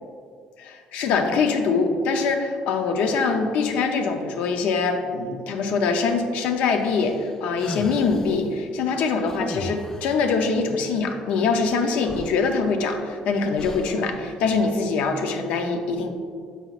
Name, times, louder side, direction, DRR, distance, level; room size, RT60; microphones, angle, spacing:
voice 1, 0.6-16.1, left 4 dB, 75° left, 5 dB, 0.6 m, -23 dB
sound 1, 6.8-8.4 9.3-10.2 11.7-11.8 12.0-13.0 13.6-14.1, left 2 dB, 20° left, 0.3 m, -37 dB
6.9 x 5.6 x 2.4 m, 2.1 s
cardioid pair, 150°, 2 cm